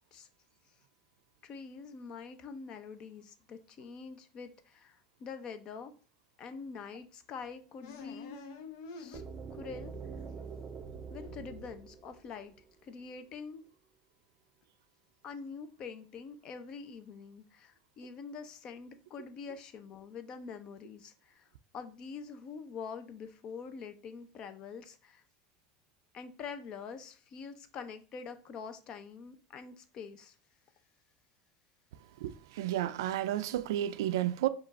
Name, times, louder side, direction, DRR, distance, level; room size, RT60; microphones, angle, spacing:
voice 1, 1.4-5.9 6.4-8.4 8.9-9.2 9.5-9.9 11.1-12.5 12.8-13.6 15.2-25.2 26.1-30.4, left 5 dB, 40° left, 0.6 m, -45 dB
sound 1, 7.8-9.6 9.9-12.2, left 4 dB, 80° left, 0.7 m, -49 dB
sound 2, 9.1-13.0, right 5 dB, 30° right, 0.4 m, -45 dB
voice 2, 32.2-34.5, right 13 dB, 90° right, 0.3 m, -32 dB
5.1 x 2.4 x 4.1 m
supercardioid pair, 125°, 2 cm